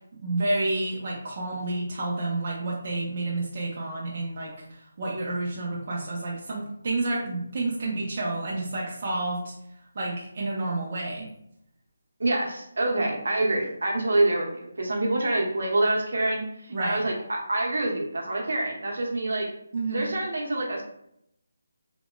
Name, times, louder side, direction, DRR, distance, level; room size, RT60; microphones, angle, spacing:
voice 1, 0.2-9.5 10.0-11.3 16.7-17.0 19.7-20.1, right 2 dB, 40° right, -4 dB, 0.5 m, -30 dB
voice 2, 12.2-19.5 19.9-20.8, right 2 dB, 70° right, -1 dB, 0.8 m, -26 dB
2.9 x 2.1 x 2.3 m, 0.75 s
hypercardioid pair, 170°, 0 cm